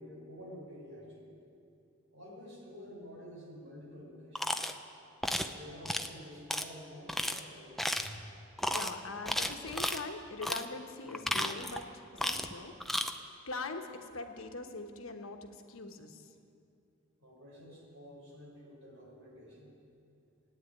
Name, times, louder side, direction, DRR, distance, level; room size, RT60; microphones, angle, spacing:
voice 1, 0.0-1.4 2.1-4.6 5.5-8.2 17.2-19.8, equal, 75° right, -3 dB, 4.6 m, -50 dB
sound 1, 4.4-4.7 5.2-5.5 5.9-6.1 6.5-6.6 7.1-7.4 7.8-8.2 8.6-8.9 9.3-10.0 10.4-10.7 11.1-11.8 12.2-12.5 12.8-13.1, left 1 dB, ahead, 0.5 m, -33 dB
voice 2, 8.7-13.1 13.5-16.3, left 3 dB, 90° left, 5 dB, 1.2 m, -42 dB
14.5 x 9.4 x 9.1 m, 2.6 s
head